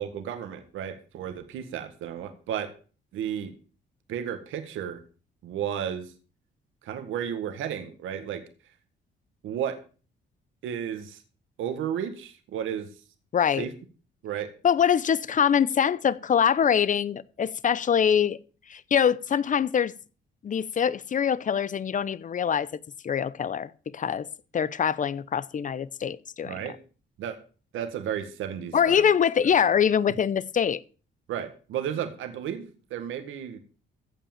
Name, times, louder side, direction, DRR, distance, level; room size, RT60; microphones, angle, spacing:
voice 1, 0.0-2.7 3.1-3.5 4.1-5.0 5.4-6.1 6.8-8.4 9.4-9.8 10.6-11.2 11.6-12.9 13.6-13.7 14.2-14.5 26.4-26.7 27.2-27.4 27.7-29.0 31.3-33.6, right 9 dB, 85° right, 1.8 m, -33 dB
voice 2, 13.3-13.7 14.6-18.4 18.7-19.9 20.4-22.7 23.0-24.3 24.5-26.6 28.7-30.8, left 8 dB, 40° left, 0.7 m, -24 dB
15.5 x 5.7 x 7.2 m
cardioid pair, 90°, 20 cm